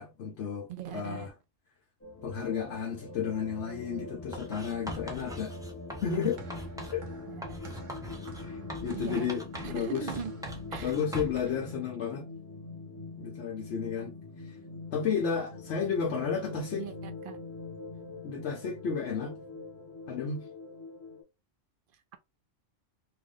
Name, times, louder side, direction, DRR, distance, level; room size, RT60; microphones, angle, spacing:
voice 1, 0.0-1.3 2.2-5.6 6.0-6.4 6.9-7.1 8.4-10.1 10.8-12.3 13.2-14.1 14.4-14.6 14.9-16.9 18.2-19.4 20.1-20.5, left 6 dB, 65° left, 1.0 m, -32 dB
voice 2, 0.7-1.3 7.3-7.6 8.9-9.3 9.6-10.3 10.7-10.9 16.8-17.4, right 8 dB, 55° right, 0.7 m, -40 dB
sound 1, 2.0-21.2, left 2 dB, 15° left, 0.9 m, -43 dB
Writing, 4.3-7.0 7.4-9.8 10.1-11.5, equal, 5° right, 0.3 m, -42 dB
sound 2, 6.1-11.9, equal, 85° right, 1.4 m, -51 dB
3.0 x 2.4 x 3.5 m
omnidirectional pair, 1.3 m